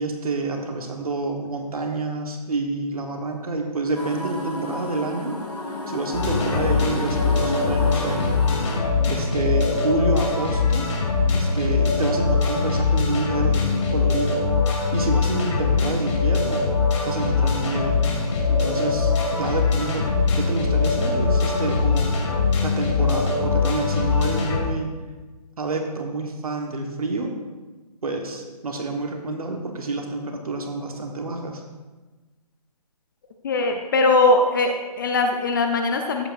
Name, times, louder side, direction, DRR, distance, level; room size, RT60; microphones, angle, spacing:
voice 1, 0.0-5.4 5.9-8.4 9.1-10.9 11.3-14.4 14.9-16.7 17.1-18.1 18.5-20.0 20.3-22.2 22.6-24.9 25.6-27.3 28.0-31.6, right 3 dB, 60° right, 3 dB, 1.3 m, -28 dB
sound 1, 3.9-8.8, left 1 dB, 80° left, 2.6 m, -31 dB
sound 2, 6.1-24.6, left 4 dB, 45° left, 2.2 m, -22 dB
voice 2, 33.4-36.3, left 2 dB, 30° left, 4 dB, 0.6 m, -20 dB
13.5 x 8.3 x 2.6 m, 1.2 s
figure-of-eight pair, 145°, 21 cm